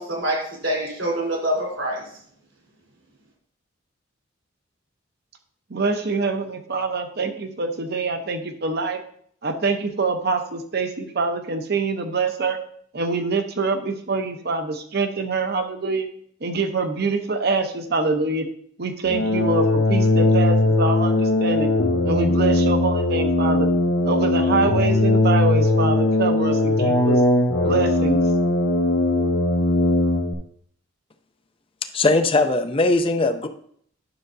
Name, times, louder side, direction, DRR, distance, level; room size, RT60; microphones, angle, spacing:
voice 1, 0.0-2.1, right 1 dB, 75° right, -3 dB, 3.6 m, -25 dB
voice 2, 5.7-9.0 9.4-12.6 12.9-16.1 16.4-18.5 18.8-21.7 22.0-23.7 24.0-27.2 27.6-28.2, right 3 dB, 55° right, 7 dB, 0.8 m, -25 dB
sound 1, 19.0-30.3, left 2 dB, 75° left, 1.0 m, -19 dB
voice 3, 31.9-33.5, left 2 dB, 30° left, 8 dB, 0.5 m, -19 dB
9.8 x 6.4 x 2.6 m, 0.63 s
head